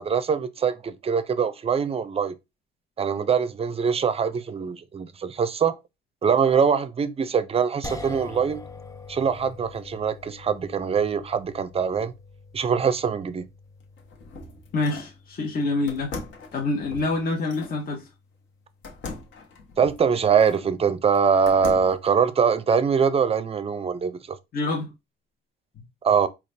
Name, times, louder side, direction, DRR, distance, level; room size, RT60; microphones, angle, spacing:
voice 1, 0.0-2.3 3.0-5.8 6.2-8.6 9.1-12.1 12.5-13.5 19.8-24.4 26.0-26.3, right 6 dB, 30° right, 0.4 m, -23 dB
sound 1, 7.8-20.1, left 3 dB, 15° left, 0.6 m, -45 dB
sound 2, 13.8-15.2 15.9-17.8 18.8-20.7 21.1-22.1, left 3 dB, 70° left, 1.0 m, -39 dB
voice 2, 14.7-16.1 16.5-18.0 24.5-24.9 25.8-25.9, left 2 dB, 50° left, 0.9 m, -26 dB
3.9 x 2.3 x 3.2 m
cardioid pair, 90°, 20 cm